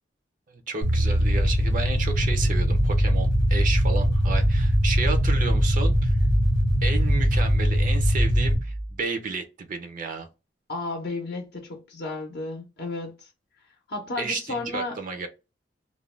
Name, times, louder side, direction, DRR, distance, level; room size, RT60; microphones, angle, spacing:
voice 1, 0.5-6.2 6.8-10.3 14.2-15.3, right 4 dB, 50° right, 0.4 m, -32 dB
sound 1, 0.8-8.6, equal, 80° right, 1.0 m, -21 dB
sound 2, 2.2-9.0, right 1 dB, 15° left, 0.4 m, -33 dB
voice 2, 10.7-13.3 13.9-15.0, left 2 dB, 60° left, 0.6 m, -33 dB
2.4 x 2.1 x 3.1 m
head